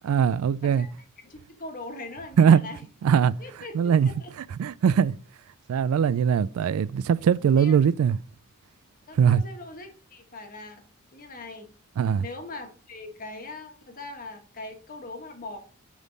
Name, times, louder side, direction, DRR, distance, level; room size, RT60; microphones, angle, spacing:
voice 1, 0.0-0.9 2.4-2.6 3.0-3.3 3.7-4.1 4.6-5.1 5.7-8.2 9.1-9.4 12.0-12.3, right 7 dB, 75° right, 0.3 m, -21 dB
voice 2, 1.2-2.8 3.4-3.9 4.2-4.3 7.6-7.8 9.1-10.8 11.1-11.7 12.2-15.6, left 2 dB, 40° left, 1.4 m, -41 dB
9.7 x 3.7 x 4.0 m
head